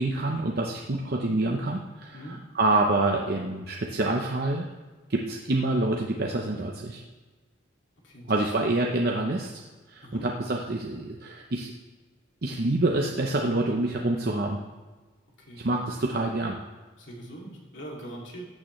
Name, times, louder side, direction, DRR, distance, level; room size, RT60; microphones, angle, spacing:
voice 1, 0.0-4.7 5.1-7.0 8.3-9.6 9.9-11.7 12.4-14.6 15.6-16.6, right 2 dB, 50° right, 0 dB, 0.7 m, -27 dB
voice 2, 17.0-18.5, right 1 dB, 70° left, -2 dB, 2.4 m, -42 dB
14.5 x 8.6 x 3.2 m, 1.3 s
head